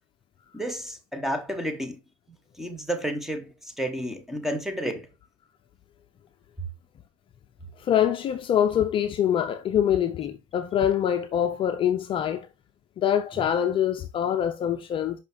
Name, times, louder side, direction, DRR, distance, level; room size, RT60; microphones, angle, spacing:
voice 1, 0.5-2.0 2.5-5.1, equal, ahead, 1.3 m, -31 dB
voice 2, 7.8-12.5 13.0-15.2, left 9 dB, 30° left, 0.6 m, -24 dB
5.7 x 5.3 x 4.1 m
hypercardioid pair, 110°, 16 cm